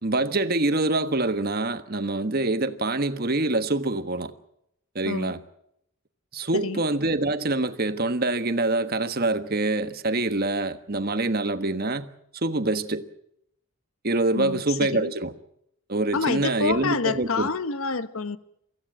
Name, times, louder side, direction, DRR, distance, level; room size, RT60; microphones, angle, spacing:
voice 1, 0.0-4.3 4.9-5.4 6.3-12.1 12.4-13.0 14.0-15.3 15.9-17.5, right 2 dB, 45° right, 1.4 m, -25 dB
voice 2, 14.4-15.1 16.1-18.4, left 4 dB, 80° left, 1.2 m, -28 dB
24.5 x 15.5 x 8.7 m
head